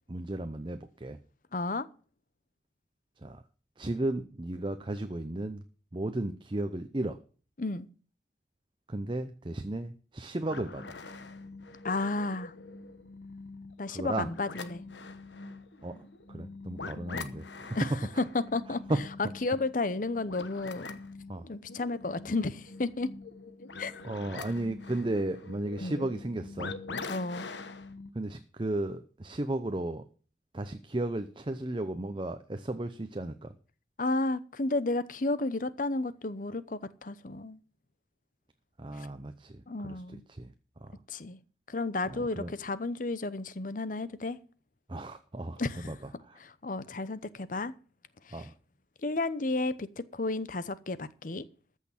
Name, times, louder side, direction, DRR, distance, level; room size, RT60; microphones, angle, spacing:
voice 1, 0.1-1.2 3.2-3.4 3.8-5.6 5.9-7.2 8.9-10.9 13.9-14.3 15.8-16.0 16.3-17.8 18.7-19.0 21.3-21.5 24.0-26.7 28.1-30.1 30.5-33.5 38.8-41.0 42.1-42.5 44.9-46.0 46.2-46.4 48.3-48.5, right 1 dB, 30° right, 0.7 m, -35 dB
voice 2, 1.5-1.9 7.6-7.9 11.8-12.5 13.8-14.8 17.7-17.9 18.3-18.8 19.2-21.0 21.5-23.1 23.8-24.0 25.8-26.0 27.1-27.5 34.0-37.6 39.0-39.1 39.7-40.3 41.1-41.4 41.7-44.4 45.6-45.9 46.4-47.7 48.2-48.4 49.0-51.5, left 2 dB, 50° left, 0.8 m, -32 dB
sound 1, 10.4-28.1, left 3 dB, 90° left, 1.2 m, -44 dB
14.0 x 6.5 x 7.2 m
head